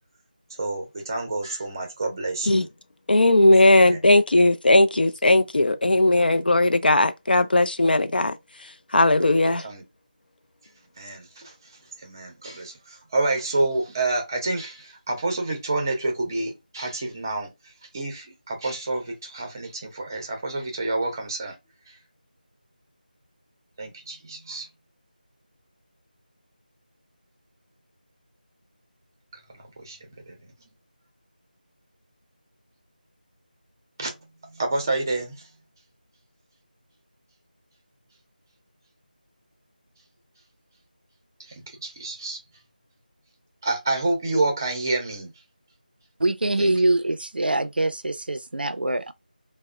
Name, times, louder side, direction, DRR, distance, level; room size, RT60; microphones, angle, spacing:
voice 1, 0.6-2.7 3.8-4.0 9.5-9.8 11.0-11.7 12.0-17.5 17.9-21.6 21.9-22.0 23.8-24.7 29.5-30.5 34.0-34.1 34.4-35.4 41.4-42.4 43.6-45.3 46.6-46.7, right 2 dB, 25° right, 0.5 m, -28 dB
voice 2, 3.1-8.4 8.9-9.6, left 2 dB, 75° left, 0.4 m, -18 dB
voice 3, 46.2-49.1, right 2 dB, 90° right, 0.4 m, -24 dB
2.7 x 2.0 x 2.4 m
figure-of-eight pair, 170°, 5 cm